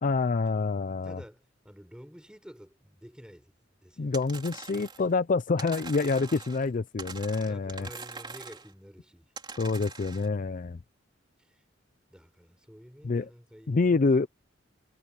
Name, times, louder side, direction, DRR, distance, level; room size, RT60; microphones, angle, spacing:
voice 1, 0.0-1.2 4.0-7.9 9.6-10.8 13.0-13.3 13.7-14.3, left 4 dB, 45° left, 0.5 m, -27 dB
voice 2, 1.0-3.5 3.8-4.2 7.4-9.3 11.4-11.6 12.1-14.2, equal, 5° right, 5.8 m, -50 dB
sound 1, 4.1-5.1 5.6-6.7 7.0-8.7 9.4-10.3, right 4 dB, 25° right, 3.9 m, -43 dB
head